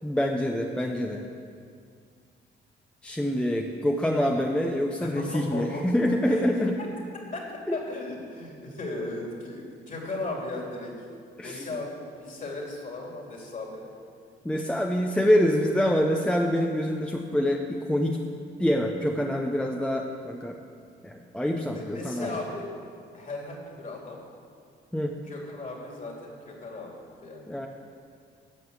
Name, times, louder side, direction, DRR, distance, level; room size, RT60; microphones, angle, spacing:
voice 1, 0.0-1.2 3.0-6.8 7.7-7.8 11.4-11.7 14.4-18.2 18.6-20.6 21.0-22.3 24.9-25.2 27.5-27.7, equal, 5° left, 2 dB, 0.8 m, -26 dB
voice 2, 5.0-5.9 6.3-6.9 7.3-7.4 7.7-10.9 11.4-13.8 15.1-15.2 21.7-22.7 23.1-24.2 25.3-27.5, left 2 dB, 40° left, -1 dB, 3.0 m, -36 dB
13.0 x 5.5 x 8.1 m, 2.2 s
cardioid pair, 90°, 20 cm